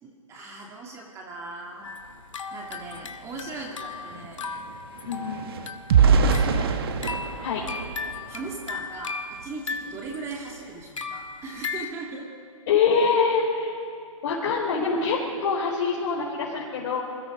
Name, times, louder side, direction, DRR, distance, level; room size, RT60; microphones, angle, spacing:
voice 1, 0.0-1.9 2.5-4.5 6.0-6.7 8.3-12.3, right 3 dB, 15° right, -1 dB, 2.5 m, -39 dB
sound 1, 1.8-11.9, left 4 dB, 65° left, 2.1 m, -37 dB
sound 2, 2.9-3.0 3.3-8.8 9.3-9.5 9.9-10.1, right 6 dB, 45° right, 1.7 m, -25 dB
voice 2, 5.0-5.5 7.4-7.6 12.7-13.7 14.2-17.0, left 5 dB, 40° left, -5 dB, 4.6 m, -24 dB
27.5 x 22.0 x 5.3 m, 2.4 s
figure-of-eight pair, 135°, 18 cm